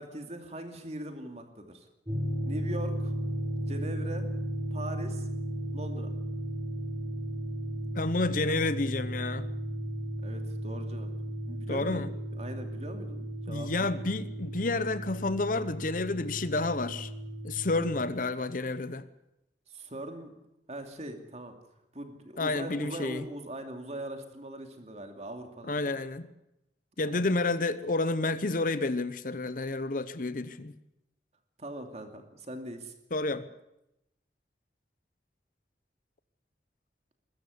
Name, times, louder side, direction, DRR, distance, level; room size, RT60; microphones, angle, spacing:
voice 1, 0.0-1.9 2.5-3.1 3.7-4.3 4.7-5.3 5.7-6.1 10.2-12.0 12.3-13.9 19.7-20.4 20.7-21.5 21.9-25.9 27.1-27.3 31.6-32.9, right 1 dB, 40° right, 2.5 m, -41 dB
sound 1, 2.1-18.0, equal, 20° right, 5.1 m, -35 dB
voice 2, 7.9-9.5 11.7-12.1 13.5-17.1 17.4-19.1 22.4-23.3 25.7-26.3 27.0-30.7 33.1-33.5, left 2 dB, 50° left, 0.8 m, -30 dB
21.5 x 13.5 x 9.7 m
head